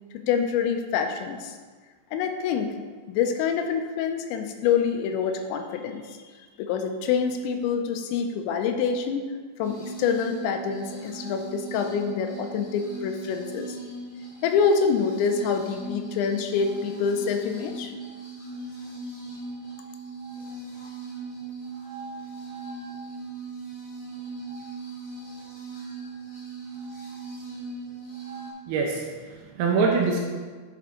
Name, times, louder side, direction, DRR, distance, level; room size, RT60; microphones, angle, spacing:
voice 1, 0.1-1.6 2.1-2.7 3.1-6.2 6.6-9.2 9.6-13.8 14.4-17.9, left 6 dB, 90° left, 6 dB, 3.0 m, -26 dB
sound 1, 9.6-28.5, right 3 dB, 30° left, 1.5 m, -39 dB
voice 2, 28.7-30.2, right 4 dB, 75° right, 0 dB, 2.4 m, -24 dB
10.5 x 5.8 x 3.7 m, 1.5 s
omnidirectional pair, 5.1 m